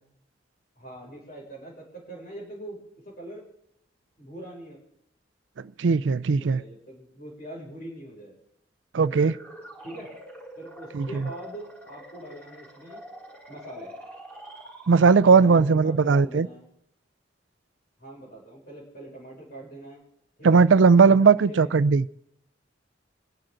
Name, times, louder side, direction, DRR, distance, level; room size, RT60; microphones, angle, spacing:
voice 1, 0.8-2.8 3.2-3.4 4.2-4.8 6.4-8.3 9.8-10.1 10.5-13.0 13.5-13.9 15.4-16.6 18.0-20.0 20.4-20.6 21.1-21.7, right 1 dB, 60° left, 6.3 m, -42 dB
voice 2, 5.8-6.6 8.9-9.4 10.9-11.1 14.9-16.5 20.4-22.1, right 5 dB, 90° right, 0.5 m, -18 dB
sound 1, 9.0-15.5, right 1 dB, 10° left, 3.9 m, -45 dB
26.5 x 10.5 x 3.9 m
head